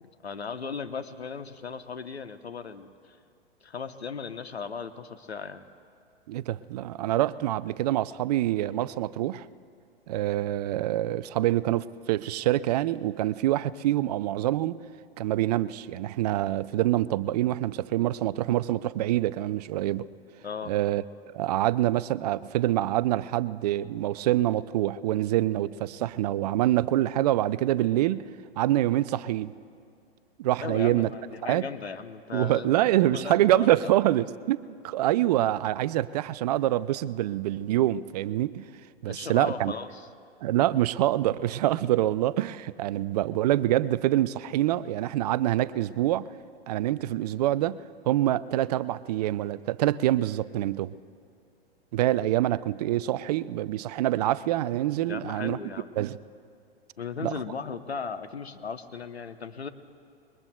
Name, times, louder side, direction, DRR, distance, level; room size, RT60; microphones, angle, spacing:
voice 1, 0.0-3.2 3.6-5.6 20.4-20.7 30.6-32.7 33.1-34.0 39.1-40.1 55.1-55.9 57.0-59.7, left 5 dB, 85° left, 9 dB, 0.9 m, -37 dB
voice 2, 6.3-9.5 10.1-14.8 15.2-20.1 20.7-21.0 21.3-28.2 28.6-29.5 30.4-31.1 31.4-31.6 32.3-38.7 39.0-39.7 40.4-46.3 46.7-47.8 48.1-50.9 51.9-55.6 56.0-56.2 57.2-57.3, right 14 dB, 40° right, 17 dB, 0.4 m, -26 dB
26.0 x 22.0 x 2.3 m, 2.4 s
figure-of-eight pair, 105°, 31 cm